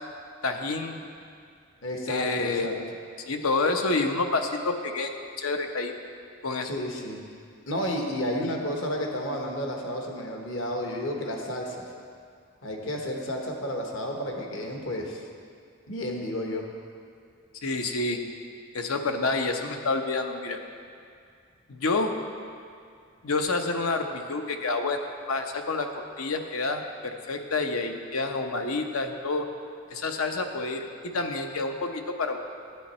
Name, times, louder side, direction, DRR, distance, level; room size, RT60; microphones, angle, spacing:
voice 1, 0.4-1.0 2.1-2.9 3.3-5.1 5.4-5.9 6.4-6.7 8.4-8.6 17.6-18.3 18.7-20.6 21.7-22.2 23.2-29.5 29.9-32.4, left 3 dB, 90° left, 5 dB, 0.8 m, -28 dB
voice 2, 1.8-2.7 6.6-7.2 7.7-11.8 12.6-15.2 15.9-16.7, equal, 70° left, 1 dB, 1.3 m, -31 dB
11.5 x 9.1 x 4.3 m, 2.3 s
head